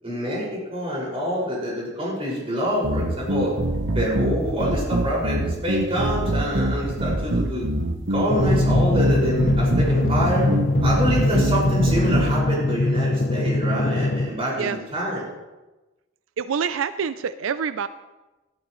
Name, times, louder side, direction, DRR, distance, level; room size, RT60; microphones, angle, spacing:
voice 1, 0.0-3.5 3.9-7.7 8.1-10.5 10.8-15.2, equal, 30° right, -5 dB, 5.6 m, -26 dB
sound 1, 2.8-12.3, right 1 dB, 70° right, 1.1 m, -25 dB
Drum, 8.3-14.3, left 2 dB, 40° left, 0.5 m, -22 dB
voice 2, 11.3-11.6 14.6-14.8 16.4-17.9, right 6 dB, 90° right, 12 dB, 0.4 m, -27 dB
19.5 x 12.0 x 3.1 m, 1.1 s
head